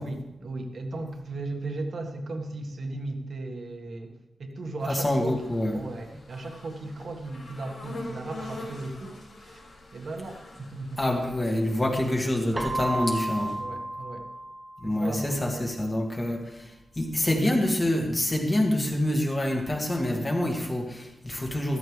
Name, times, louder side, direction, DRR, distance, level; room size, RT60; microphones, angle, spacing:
voice 1, 0.0-5.4 5.7-9.6 9.9-11.0 11.8-12.1 13.6-14.3 14.8-16.0, right 2 dB, 60° right, 4 dB, 1.6 m, -36 dB
sound 1, 4.8-13.5, left 2 dB, 90° left, 4.7 m, -45 dB
voice 2, 4.9-5.8 11.0-13.6 14.8-21.8, left 1 dB, 20° left, 0 dB, 2.2 m, -26 dB
Keyboard (musical), 12.5-15.3, right 1 dB, 15° right, 1.0 m, -33 dB
14.0 x 13.5 x 3.3 m, 0.90 s
wide cardioid pair, 160°, 0 cm